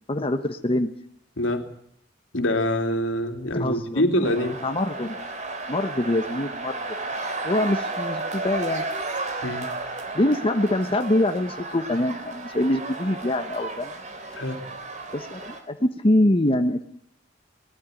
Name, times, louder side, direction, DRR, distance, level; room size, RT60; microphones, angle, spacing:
voice 1, 0.1-0.9 3.5-4.1 4.6-5.2 5.7-6.8 7.4-8.8 10.1-13.9 15.1-16.8, left 1 dB, 30° left, 6 dB, 1.1 m, -24 dB
voice 2, 1.4-1.7 2.3-4.6 9.4-9.7 14.3-14.6, left 1 dB, 80° left, 5 dB, 2.8 m, -25 dB
sound 1, 4.2-15.6, right 3 dB, 40° right, 3.3 m, -33 dB
20.5 x 14.0 x 9.1 m, 0.70 s
head